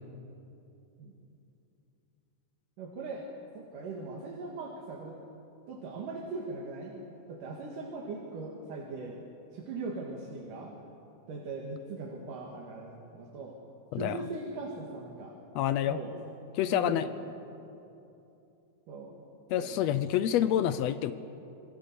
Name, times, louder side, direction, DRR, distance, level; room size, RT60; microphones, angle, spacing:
voice 1, 2.8-3.3 3.6-5.2 5.7-9.2 9.5-10.8 11.3-13.6 13.9-15.4 15.9-16.1 16.7-17.3 18.9-19.2 19.6-19.8, right 3 dB, 75° right, -1 dB, 3.6 m, -40 dB
voice 2, 15.5-16.0 16.5-17.1 19.5-21.1, left 11 dB, 85° left, 12 dB, 1.5 m, -27 dB
28.0 x 21.0 x 6.9 m, 2.8 s
omnidirectional pair, 3.8 m